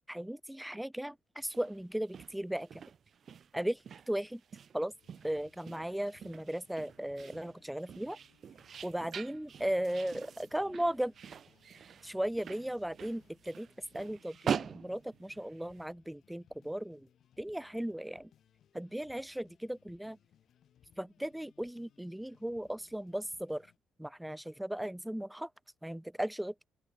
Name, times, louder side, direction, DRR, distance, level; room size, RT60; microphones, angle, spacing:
voice 1, 0.1-2.8 3.5-3.8 4.1-4.4 4.7-4.9 5.2-8.2 8.8-11.1 12.0-13.7 13.9-17.1 17.4-18.3 18.7-20.2 21.0-23.7 24.0-25.5 25.8-26.5, right 1 dB, 5° right, 0.7 m, -36 dB
sound 1, 1.4-15.9, right 7 dB, 55° right, 0.4 m, -44 dB
sound 2, 4.9-23.8, left 10 dB, 65° left, 5.5 m, -67 dB
open air
cardioid pair, 90°, 0 cm